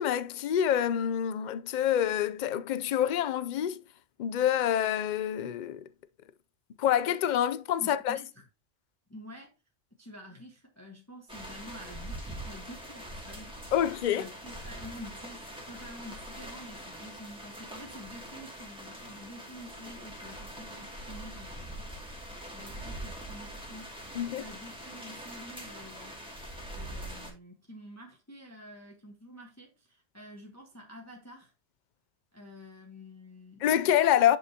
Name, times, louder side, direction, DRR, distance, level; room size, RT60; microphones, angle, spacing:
voice 1, 0.0-3.8 4.2-5.8 6.8-8.2 13.7-14.3 24.1-24.4 33.6-34.4, left 10 dB, 55° left, 0.6 m, -27 dB
voice 2, 7.8-8.5 9.1-9.5 10.0-21.9 22.5-26.2 26.7-31.5 32.3-33.7, left 1 dB, 15° left, 1.3 m, -48 dB
sound 1, 11.3-27.3, right 1 dB, 5° right, 2.3 m, -43 dB
10.0 x 5.6 x 2.8 m
omnidirectional pair, 1.2 m